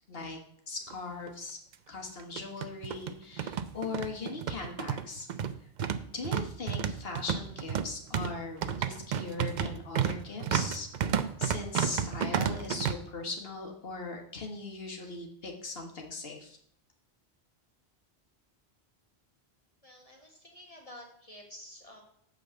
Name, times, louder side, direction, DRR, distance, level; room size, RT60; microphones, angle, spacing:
voice 1, 0.1-0.4 0.7-1.6 1.9-5.3 6.1-16.6, left 3 dB, 65° left, 2 dB, 1.7 m, -39 dB
sound 1, 0.9-1.0 1.3-1.4 2.2-12.9, right 8 dB, 55° right, 0.6 m, -32 dB
voice 2, 19.8-22.0, left 1 dB, 35° left, 1 dB, 1.3 m, -50 dB
8.5 x 4.0 x 6.9 m, 0.66 s
omnidirectional pair, 1.1 m